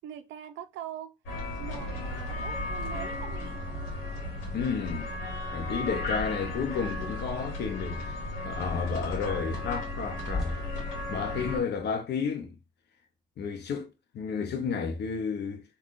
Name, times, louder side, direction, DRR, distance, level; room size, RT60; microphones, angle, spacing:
voice 1, 0.0-1.1 1.6-3.6, right 10 dB, 70° right, 0.5 m, -42 dB
sound 1, 1.3-11.6, left 2 dB, 75° left, 1.2 m, -35 dB
sound 2, 2.4-11.8, left 2 dB, ahead, 1.4 m, -45 dB
voice 2, 4.5-5.1 5.5-10.6 11.1-12.6 13.4-13.9 14.1-15.6, left 6 dB, 55° left, 0.8 m, -32 dB
3.5 x 2.3 x 2.5 m
supercardioid pair, 70°, 20 cm